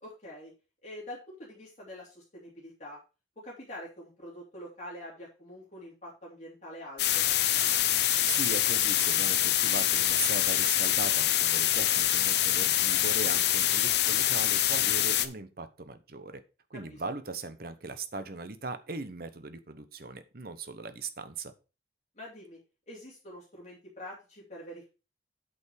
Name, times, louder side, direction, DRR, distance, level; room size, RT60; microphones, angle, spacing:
voice 1, 0.0-0.5 0.8-3.0 3.4-7.2 16.9-17.0 22.2-22.6 22.9-24.9, left 1 dB, 40° left, -4 dB, 2.8 m, -45 dB
sound 1, 7.0-15.3, left 12 dB, 60° left, 0.7 m, -25 dB
voice 2, 8.2-16.4 16.7-21.5, right 3 dB, 50° right, 11 dB, 1.0 m, -39 dB
8.4 x 5.2 x 4.8 m, 0.32 s
head